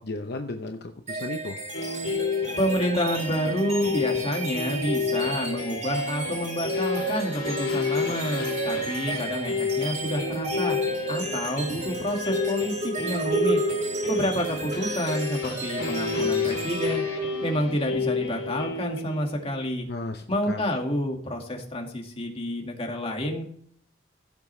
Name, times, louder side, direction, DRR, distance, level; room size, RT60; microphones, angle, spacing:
voice 1, 0.0-1.6 19.9-20.6, left 2 dB, 55° left, 4 dB, 0.8 m, -34 dB
sound 1, 1.1-17.7, right 3 dB, 40° right, 4.1 m, -32 dB
sound 2, 1.7-19.5, left 4 dB, 85° left, 2.9 m, -31 dB
voice 2, 2.6-10.8 11.1-13.6 14.1-17.0 17.4-19.9 20.3-23.4, equal, 30° left, 2 dB, 2.1 m, -29 dB
16.5 x 7.4 x 3.3 m, 0.62 s
head